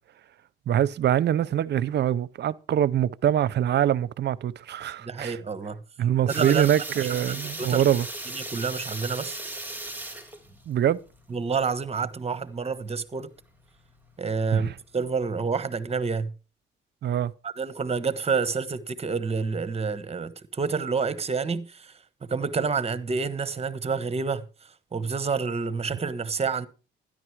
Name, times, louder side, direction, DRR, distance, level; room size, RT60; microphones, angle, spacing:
voice 1, 0.7-5.4 6.0-8.1 10.7-11.0 14.5-14.7 17.0-17.3, right 10 dB, 60° right, 0.7 m, -24 dB
voice 2, 5.0-5.8 6.3-6.7 7.3-7.8 8.3-9.4 11.3-13.3 14.2-14.7 14.9-16.3 17.4-21.9 22.2-24.5 24.9-26.7, right 5 dB, 30° right, 1.2 m, -28 dB
sound 1, 6.3-15.1, right 2 dB, 10° right, 2.8 m, -38 dB
12.5 x 10.5 x 4.7 m
cardioid pair, 90°, 20 cm